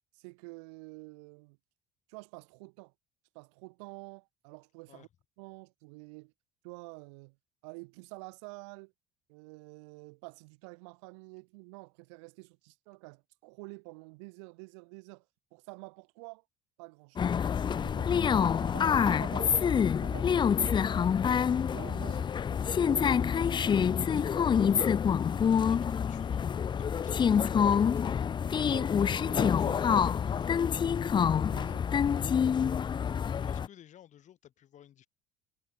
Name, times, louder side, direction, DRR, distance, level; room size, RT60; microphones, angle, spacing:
voice 1, 0.1-1.6 2.1-2.9 3.3-5.1 5.4-6.3 6.6-7.4 7.6-8.9 9.3-15.2 15.5-16.4 16.8-17.3 17.7-21.0 21.5-22.2 22.5-24.5 25.2-25.5 28.7-29.0 29.2-30.1 31.2-31.9, right 31 dB, 85° right, 1.2 m, -48 dB
sound 1, 17.2-33.7, left 7 dB, 30° left, 0.5 m, -27 dB
voice 2, 25.7-28.3 29.9-30.6 33.4-35.1, left 11 dB, 55° left, 5.3 m, -56 dB
supercardioid pair, 80°, 15 cm